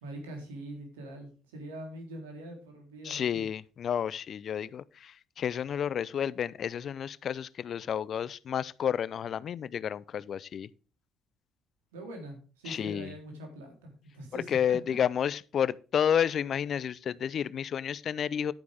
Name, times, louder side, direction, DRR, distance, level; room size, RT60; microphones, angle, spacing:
voice 1, 0.0-3.5 11.9-15.0, right 1 dB, 90° right, 3.5 m, -43 dB
voice 2, 3.0-10.7 12.7-13.1 14.5-18.5, left 8 dB, 55° left, 0.6 m, -31 dB
11.0 x 9.4 x 3.5 m
hypercardioid pair, 50°, 0 cm